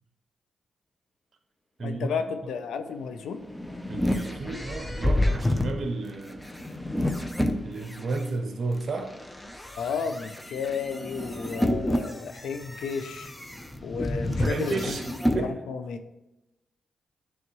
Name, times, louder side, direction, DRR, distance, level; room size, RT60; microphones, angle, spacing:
voice 1, 1.8-3.4 9.8-13.3 13.8-15.0 15.4-16.0, left 6 dB, 90° left, 0.5 m, -32 dB
sound 1, 3.2-8.2 8.8-15.4, left 1 dB, 10° left, 0.7 m, -29 dB
voice 2, 3.9-6.5 7.6-9.1 14.4-15.0 15.3-15.6, right 3 dB, 60° right, 0.7 m, -32 dB
9.2 x 3.5 x 3.1 m
cardioid pair, 60°, 0 cm